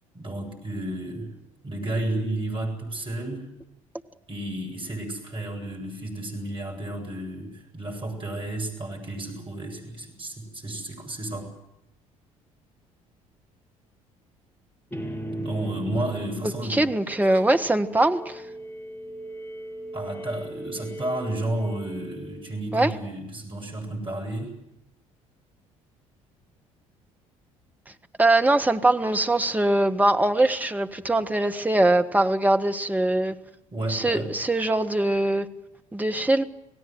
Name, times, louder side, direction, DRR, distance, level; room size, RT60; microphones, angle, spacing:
voice 1, 0.1-1.3 1.6-3.5 4.3-11.5 15.3-16.9 19.9-24.5 33.7-34.3, right 1 dB, 30° right, 3 dB, 8.0 m, -32 dB
sound 1, 14.9-22.8, right 1 dB, 10° left, 3.8 m, -38 dB
voice 2, 16.7-18.4 22.7-22.9 28.2-33.3 33.9-35.5 35.9-36.4, right 2 dB, 10° right, 6 dB, 1.5 m, -22 dB
28.5 x 17.5 x 8.0 m, 0.88 s
figure-of-eight pair, 55°, 18 cm